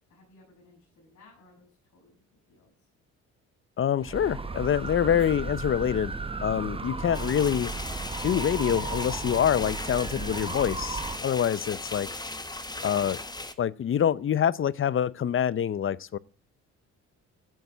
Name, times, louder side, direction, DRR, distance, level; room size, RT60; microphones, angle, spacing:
voice 1, 0.1-2.9, left 2 dB, 65° left, 7.0 m, -59 dB
voice 2, 3.8-6.1 6.4-7.7 8.2-12.1 12.8-13.2 13.6-16.2, left 9 dB, 45° left, 0.7 m, -26 dB
sound 1, 4.0-11.2, right 4 dB, 20° right, 1.1 m, -35 dB
sound 2, 7.1-13.5, left 2 dB, 15° left, 1.3 m, -37 dB
12.5 x 8.0 x 7.4 m
cardioid pair, 90°, 30 cm